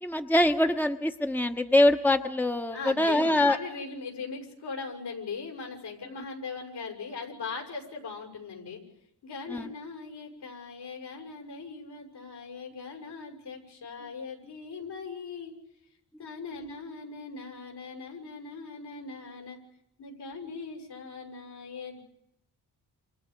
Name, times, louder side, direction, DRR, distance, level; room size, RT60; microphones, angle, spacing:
voice 1, 0.0-3.6 9.5-9.7, left 1 dB, 5° left, 7 dB, 1.2 m, -24 dB
voice 2, 2.7-8.8 9.2-15.5 16.2-19.6 20.0-22.0, left 4 dB, 70° left, 1 dB, 6.8 m, -40 dB
28.5 x 27.0 x 5.3 m, 0.79 s
cardioid pair, 70°, 41 cm